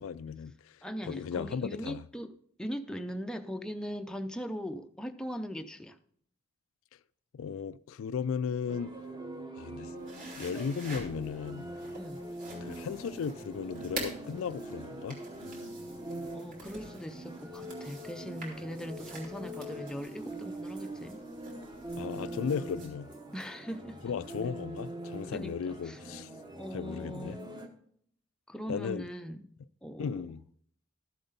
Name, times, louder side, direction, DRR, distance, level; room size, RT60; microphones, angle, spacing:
voice 1, 0.0-2.0 7.3-8.9 9.6-9.9 10.4-11.6 12.6-15.2 21.9-23.1 24.0-26.3 26.7-27.4 28.7-29.0 30.0-30.4, left 6 dB, 75° left, 0.3 m, -36 dB
voice 2, 0.8-6.0 12.0-12.3 16.3-21.2 23.3-24.0 25.3-26.0 26.6-27.5 28.5-29.5 29.8-30.3, equal, 5° left, 0.5 m, -40 dB
sound 1, 8.7-27.7, right 1 dB, 20° right, 1.0 m, -43 dB
sound 2, 10.0-22.9, right 2 dB, 40° right, 3.1 m, -47 dB
13.0 x 7.8 x 3.9 m
head